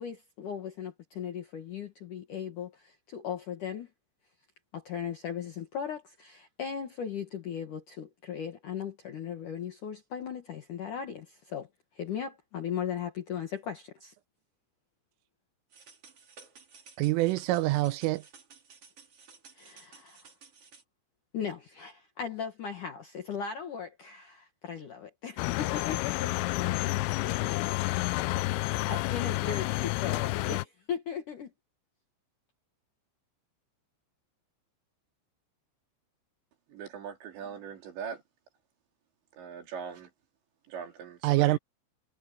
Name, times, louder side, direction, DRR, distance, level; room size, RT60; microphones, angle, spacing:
voice 1, 0.0-3.9 4.7-11.7 11.9-14.1 19.5-20.3 21.3-27.7 28.5-31.5, left 8 dB, 65° left, 2.1 m, -38 dB
sound 1, 15.7-20.8, right 5 dB, 35° right, 3.0 m, -55 dB
voice 2, 17.0-18.2 41.2-41.6, right 18 dB, 80° right, 3.2 m, -25 dB
sound 2, 25.4-30.7, left 20 dB, 85° left, 2.6 m, -30 dB
voice 3, 36.7-38.2 39.3-40.1 40.7-41.6, right 7 dB, 60° right, 5.4 m, -41 dB
omnidirectional pair, 5.8 m